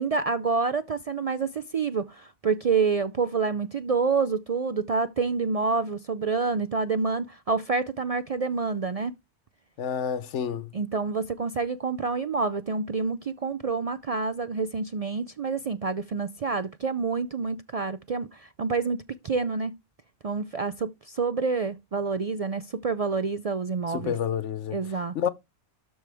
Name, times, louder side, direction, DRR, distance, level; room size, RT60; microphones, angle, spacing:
voice 1, 0.0-9.1 10.7-19.7 20.2-24.1 24.7-25.1, right 4 dB, 55° right, 0.4 m, -28 dB
voice 2, 9.8-10.7 23.9-24.8 25.1-25.3, left 8 dB, 85° left, 1.1 m, -29 dB
12.5 x 4.7 x 3.4 m
omnidirectional pair, 1.2 m